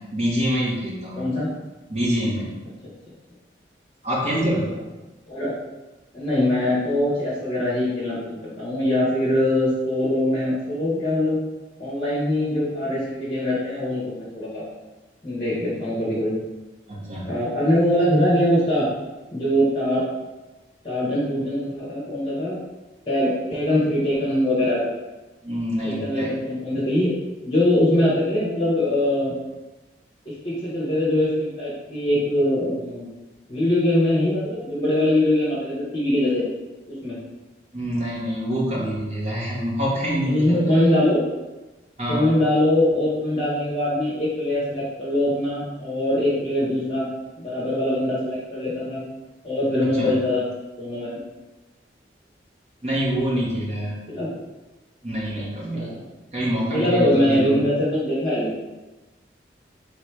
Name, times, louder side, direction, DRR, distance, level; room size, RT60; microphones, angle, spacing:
voice 1, 0.0-1.3 1.9-2.5 4.0-4.7 16.9-17.4 25.4-26.3 37.7-40.6 42.0-42.3 50.0-50.1 52.8-54.0 55.0-55.9 56.3-57.6, equal, 35° right, -5 dB, 1.1 m, -25 dB
voice 2, 1.1-1.5 4.6-4.8 5.3-5.5 6.1-11.4 11.8-14.6 15.2-16.4 17.3-18.9 19.3-20.1 20.8-22.6 23.1-24.9 25.8-27.1 27.4-29.3 30.2-33.1 33.5-36.4 36.9-37.2 40.3-41.2 42.1-47.1 47.4-49.0 49.4-50.4 50.8-51.1 54.1-54.4 55.7-56.0 56.7-58.5, left 1 dB, 30° left, -8 dB, 1.3 m, -22 dB
3.3 x 3.1 x 4.6 m, 1.1 s
head